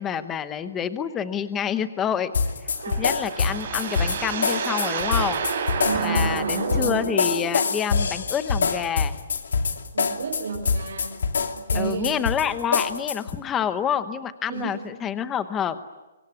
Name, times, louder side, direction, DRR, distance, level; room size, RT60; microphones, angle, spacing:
voice 1, 0.0-2.3 3.0-5.5 6.0-9.2 11.7-15.8, left 8 dB, 10° left, 12 dB, 0.9 m, -28 dB
sound 1, 2.3-13.4, left 5 dB, 80° left, 2.8 m, -25 dB
sound 2, 2.6-7.8, right 6 dB, 40° right, 5.7 m, -30 dB
voice 2, 5.7-7.1 9.9-11.2 11.5-12.2 14.5-14.9, right 5 dB, 75° right, -1 dB, 5.7 m, -31 dB
sound 3, 5.9-6.9, right 4 dB, 10° right, 3.4 m, -40 dB
24.5 x 24.0 x 9.8 m, 1.1 s
hypercardioid pair, 175°, 0 cm